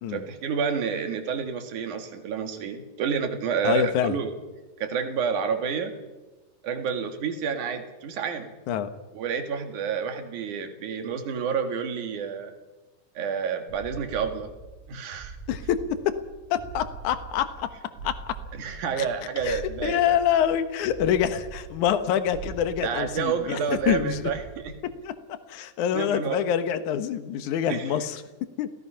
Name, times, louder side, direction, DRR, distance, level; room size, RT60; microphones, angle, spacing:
voice 1, 0.1-4.3 4.8-5.9 6.6-8.5 9.1-12.5 13.1-14.5 14.9-15.4 18.5-20.2 22.8-24.7 25.9-26.4 27.7-28.0, right 6 dB, 65° right, 6 dB, 3.4 m, -29 dB
voice 2, 3.6-4.2 8.7-8.9 15.5-15.8 16.5-17.7 18.0-18.1 19.0-19.1 19.4-23.6 23.9-24.2 25.0-25.1 25.5-28.2 28.6-28.7, left 9 dB, 70° left, 10 dB, 2.5 m, -26 dB
sound 1, 13.7-25.0, right 5 dB, 85° right, 6.7 m, -42 dB
28.5 x 17.0 x 5.8 m, 1.1 s
omnidirectional pair, 3.8 m